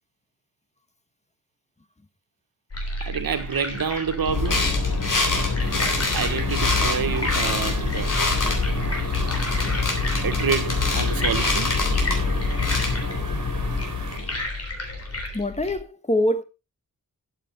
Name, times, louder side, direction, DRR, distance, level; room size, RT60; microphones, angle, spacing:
sound 1, 2.7-15.8, left 1 dB, 45° left, 3.6 m, -33 dB
voice 1, 3.0-4.7 6.1-8.1 10.2-11.9, right 6 dB, 90° right, 1.4 m, -28 dB
sound 2, 4.3-14.5, left 3 dB, 65° left, 3.6 m, -24 dB
sound 3, 5.6-14.2, right 5 dB, 55° right, 2.5 m, -40 dB
voice 2, 15.3-16.4, left 1 dB, 20° left, 1.2 m, -24 dB
12.5 x 7.7 x 4.1 m
wide cardioid pair, 125°, 34 cm